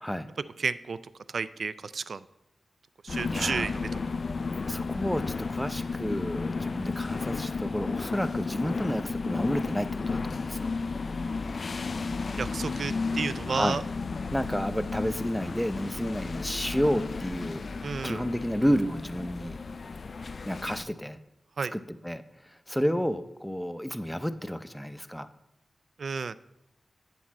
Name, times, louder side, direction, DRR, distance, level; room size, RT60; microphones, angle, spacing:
voice 1, 0.6-1.0 1.3-2.2 3.0-4.1 12.4-13.8 17.8-18.2 21.6-21.7 26.0-26.4, right 5 dB, 75° right, 16 dB, 0.3 m, -32 dB
sound 1, 3.1-20.8, left 4 dB, 60° left, 0.3 m, -33 dB
voice 2, 3.3-3.7 4.7-10.7 13.5-13.8 14.3-17.6 18.0-19.6 20.4-21.2 21.7-25.3, equal, 5° left, 11 dB, 0.6 m, -31 dB
8.1 x 7.3 x 4.2 m, 0.88 s
wide cardioid pair, 75°, 0 cm